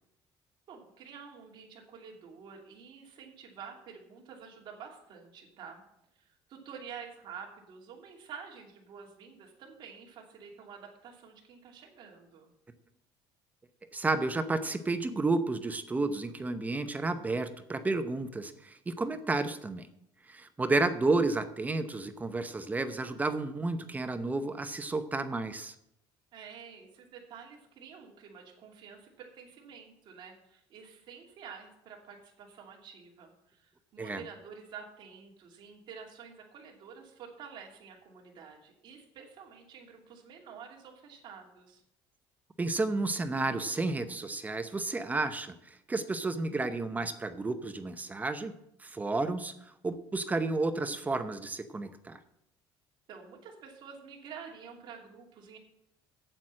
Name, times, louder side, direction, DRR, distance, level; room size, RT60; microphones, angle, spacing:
voice 1, 0.7-5.8 6.2-12.5 26.3-41.8 53.1-55.6, right 6 dB, 55° right, 0 dB, 2.7 m, -49 dB
voice 2, 13.9-19.9 20.3-25.7 34.0-34.2 42.6-48.5 48.8-52.2, right 3 dB, 15° right, 9 dB, 0.8 m, -31 dB
8.9 x 8.1 x 7.5 m, 0.79 s
cardioid pair, 130°, 10 cm